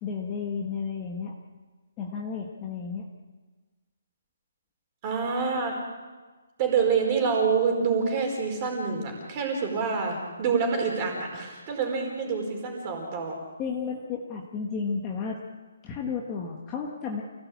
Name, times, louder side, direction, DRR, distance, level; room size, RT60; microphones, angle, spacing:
voice 1, 0.0-1.3 2.0-3.0 13.6-15.4 15.8-17.2, left 5 dB, 15° left, -1 dB, 1.5 m, -32 dB
voice 2, 5.0-5.8 6.6-13.4, right 5 dB, 15° right, 2 dB, 4.7 m, -27 dB
29.0 x 17.5 x 8.6 m, 1.3 s
hypercardioid pair, 180°, 0 cm